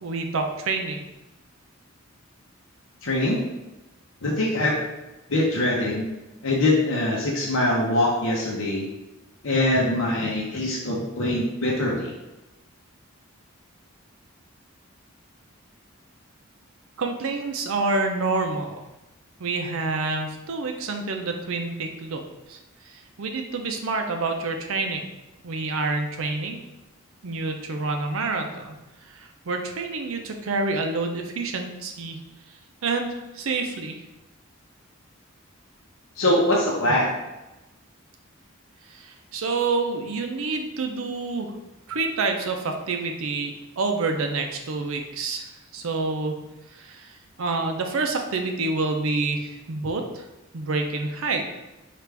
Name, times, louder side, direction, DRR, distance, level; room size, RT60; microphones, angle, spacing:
voice 1, 0.0-1.0 17.0-18.8 19.4-22.2 22.5-25.1 25.4-26.6 27.2-28.8 29.1-32.2 32.8-34.0 38.9-41.5 41.9-46.4 46.7-50.3 50.5-51.5, right 3 dB, 80° right, 4 dB, 0.5 m, -28 dB
voice 2, 3.0-3.4 4.2-4.8 5.3-6.1 6.4-8.9 9.4-12.1 36.2-37.1, left 1 dB, 70° left, -3 dB, 0.7 m, -23 dB
4.7 x 2.5 x 3.3 m, 1.0 s
head